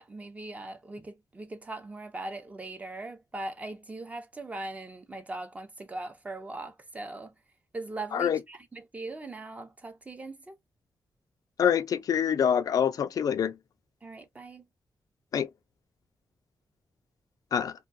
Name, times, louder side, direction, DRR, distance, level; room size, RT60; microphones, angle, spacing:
voice 1, 0.0-7.3 7.7-10.6 14.0-14.6, right 2 dB, 20° right, 0.6 m, -40 dB
voice 2, 11.6-13.6 15.3-15.5 17.5-17.7, left 8 dB, 70° left, 0.4 m, -25 dB
2.3 x 2.2 x 2.5 m
wide cardioid pair, 120°, 6 cm